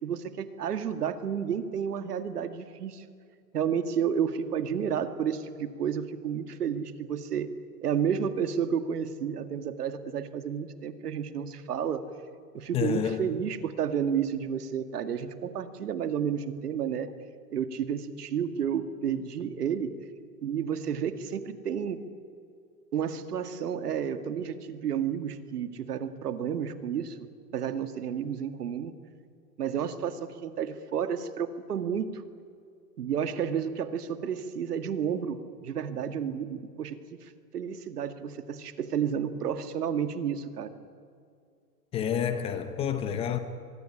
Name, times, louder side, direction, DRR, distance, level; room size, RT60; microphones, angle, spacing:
voice 1, 0.0-3.0 3.5-7.5 7.8-12.1 12.5-17.1 17.5-19.9 20.4-22.0 22.9-28.9 29.6-32.2 33.0-40.8, right 8 dB, 80° right, 2.2 m, -31 dB
voice 2, 12.7-13.3 41.9-43.4, left 8 dB, 15° left, 0.6 m, -29 dB
23.0 x 22.5 x 10.0 m
hypercardioid pair, 145°, 46 cm